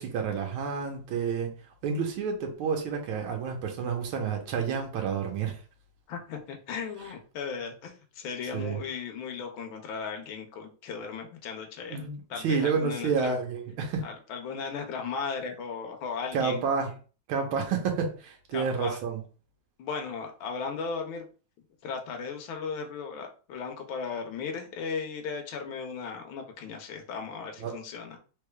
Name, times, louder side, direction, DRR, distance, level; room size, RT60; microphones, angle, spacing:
voice 1, 0.0-1.5 1.8-5.6 8.5-8.8 11.9-14.0 16.3-16.9 17.3-19.2 27.6-27.8, right 5 dB, 80° right, 3 dB, 1.6 m, -29 dB
voice 2, 6.1-13.4 14.0-16.6 18.5-19.0 19.8-21.3 21.8-28.2, left 5 dB, 75° left, 4 dB, 1.5 m, -36 dB
3.8 x 3.3 x 2.2 m, 0.37 s
omnidirectional pair, 2.3 m